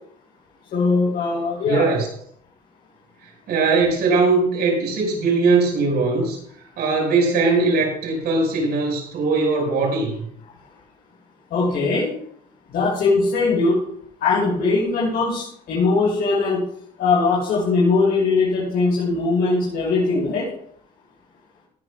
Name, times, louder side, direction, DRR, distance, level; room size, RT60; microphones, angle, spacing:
voice 1, 0.7-1.9 11.5-12.1 12.7-13.8 14.2-16.6 17.0-20.5, left 3 dB, 70° left, -7 dB, 5.5 m, -20 dB
voice 2, 1.6-2.1 3.5-6.4 6.8-10.2, right 3 dB, 70° right, 0 dB, 5.8 m, -20 dB
19.0 x 11.0 x 2.5 m, 0.66 s
cardioid pair, 110°, 17 cm